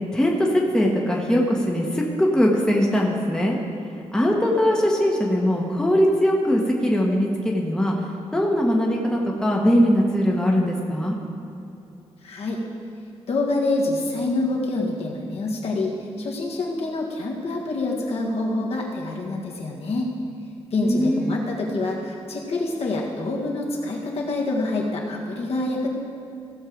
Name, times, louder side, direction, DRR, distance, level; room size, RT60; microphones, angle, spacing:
voice 1, 0.1-3.6 4.1-7.9 8.3-11.2 20.8-21.4, equal, 5° left, -2 dB, 1.1 m, -21 dB
voice 2, 12.2-12.6 13.3-20.1 20.7-25.9, left 2 dB, 65° left, -2 dB, 1.8 m, -26 dB
15.5 x 6.4 x 5.0 m, 2.8 s
wide cardioid pair, 150°, 11 cm